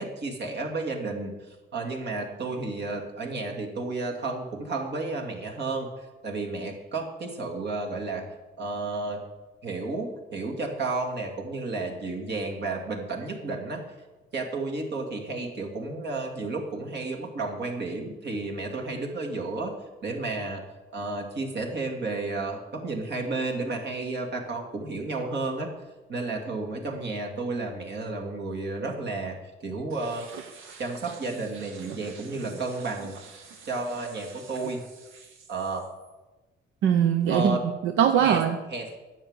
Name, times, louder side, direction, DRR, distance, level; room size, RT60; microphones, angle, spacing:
voice 1, 0.0-8.3 8.6-9.2 9.6-13.8 14.3-19.7 20.0-20.6 20.9-25.7 26.1-29.4 29.6-30.3 30.8-33.2 33.6-34.8 35.5-35.8 37.3-37.6 38.2-38.4 38.7-39.0, right 3 dB, 60° right, 2 dB, 2.6 m, -32 dB
voice 2, 36.8-38.6, right 9 dB, 80° right, 7 dB, 0.8 m, -23 dB
10.0 x 7.3 x 9.0 m, 1.2 s
cardioid pair, 90°, 20 cm